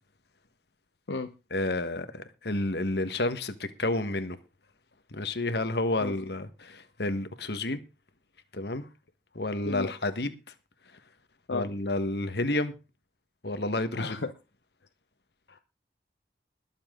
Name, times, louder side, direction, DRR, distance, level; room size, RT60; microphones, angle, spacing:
voice 1, 1.5-4.4 5.1-7.8 8.5-8.9 9.3-10.3 11.5-12.7 13.4-14.2, left 2 dB, 70° left, 1.4 m, -30 dB
voice 2, 13.9-14.3 15.5-15.6, left 3 dB, 85° left, 1.0 m, -33 dB
21.5 x 7.4 x 3.8 m
head